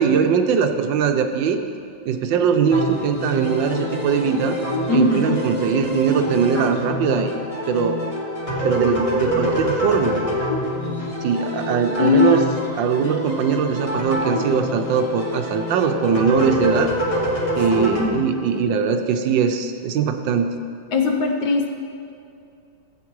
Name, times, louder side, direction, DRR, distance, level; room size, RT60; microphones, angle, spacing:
voice 1, 0.0-1.6 2.0-4.6 4.9-7.3 7.7-7.9 8.6-10.2 11.2-12.4 12.7-16.9 17.6-20.6, right 6 dB, 80° right, 6 dB, 1.4 m, -21 dB
sound 1, 2.7-18.1, equal, 20° left, 1.2 m, -26 dB
voice 2, 4.9-5.4 12.0-12.5 17.8-18.2 18.5-18.7 20.9-21.7, left 4 dB, 65° left, 3 dB, 1.2 m, -20 dB
15.0 x 8.0 x 3.1 m, 2.5 s
omnidirectional pair, 2.0 m